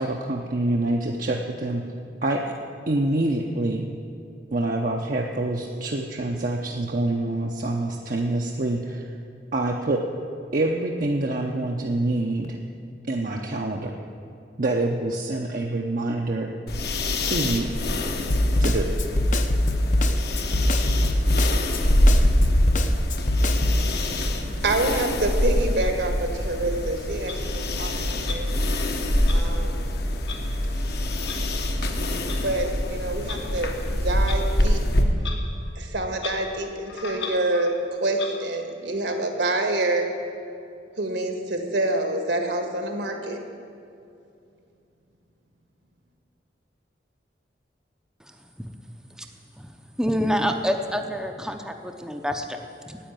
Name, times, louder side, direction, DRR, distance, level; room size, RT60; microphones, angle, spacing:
voice 1, 0.0-1.8 2.2-2.5 2.9-3.8 4.5-9.1 9.5-10.0 10.5-12.6 13.1-13.9 14.6-16.5 17.2-17.7 18.6-18.9, right 2 dB, 50° right, 1 dB, 0.7 m, -26 dB
sound 1, 16.7-35.0, left 1 dB, 60° left, 1.2 m, -25 dB
Snare drum, 18.3-23.8, left 1 dB, 45° left, 0.8 m, -22 dB
voice 2, 23.4-28.5 29.3-29.9 32.3-34.9 35.8-40.2 41.0-43.4, right 2 dB, 75° right, 5 dB, 1.7 m, -27 dB
Clock, 27.3-27.4 28.2-28.4 29.3-29.4 30.3-30.4 31.3-31.4 32.3-32.4 33.3-33.4 34.2-34.4 35.2-35.4 35.6-35.7 36.1-36.4 36.8-37.8 38.1-38.3, left 6 dB, 90° left, 1.7 m, -35 dB
voice 3, 48.2-48.7 49.2-49.3 49.6-49.7 50.0-53.0, equal, 5° right, 4 dB, 0.6 m, -28 dB
10.0 x 8.9 x 9.0 m, 2.6 s
head